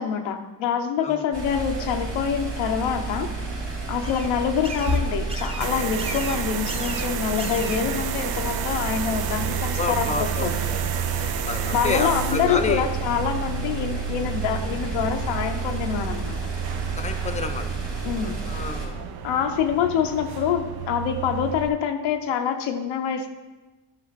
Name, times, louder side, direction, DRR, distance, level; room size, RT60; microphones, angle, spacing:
voice 1, 0.0-3.3 3.9-10.6 11.7-16.4 18.0-18.4 19.2-23.3, left 8 dB, 85° left, 4 dB, 0.8 m, -26 dB
sound 1, 1.3-18.9, right 2 dB, 70° right, 2.4 m, -31 dB
sound 2, 2.0-8.1, right 1 dB, 10° right, 0.9 m, -39 dB
sound 3, 5.6-21.7, right 9 dB, 55° right, 0.6 m, -31 dB
voice 2, 9.8-12.9 17.0-17.7 18.2-19.0, left 4 dB, 15° left, 7 dB, 0.7 m, -29 dB
9.8 x 4.9 x 4.1 m, 1.2 s
supercardioid pair, 65°, 46 cm